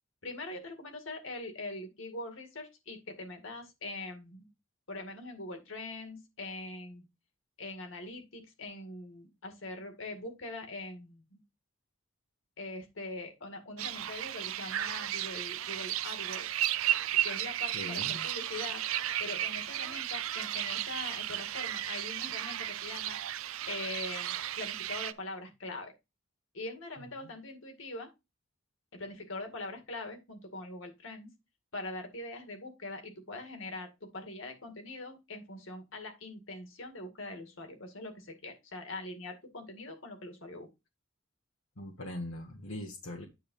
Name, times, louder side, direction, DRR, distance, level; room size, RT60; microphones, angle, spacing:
voice 1, 0.2-4.5 4.9-7.0 7.6-11.4 12.6-16.5 17.2-18.8 19.2-23.2 23.7-25.9 26.5-28.1 28.9-31.3 31.7-40.7, left 2 dB, 65° left, 2.2 m, -42 dB
sound 1, 13.8-25.1, right 12 dB, 75° right, 0.5 m, -34 dB
voice 2, 17.7-18.2 41.8-43.2, left 1 dB, 85° left, 1.5 m, -40 dB
9.4 x 3.4 x 5.4 m
head